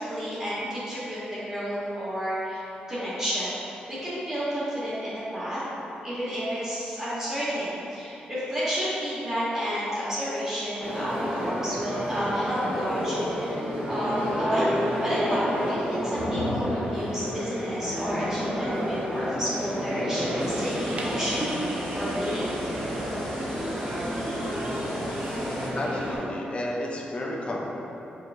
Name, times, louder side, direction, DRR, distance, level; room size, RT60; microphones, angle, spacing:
voice 1, 0.0-2.6 2.9-3.5 3.9-5.6 6.0-22.5, equal, 15° right, -11 dB, 1.4 m, -31 dB
sound 1, 10.8-26.2, equal, 65° right, 1.3 m, -30 dB
sound 2, 20.2-26.3, right 1 dB, 45° right, 0.5 m, -39 dB
sound 3, 20.4-25.7, equal, 15° left, 1.2 m, -42 dB
voice 2, 25.7-27.7, left 1 dB, 35° left, -2 dB, 0.5 m, -32 dB
5.5 x 2.9 x 2.6 m, 3.0 s
cardioid pair, 80°, 3 cm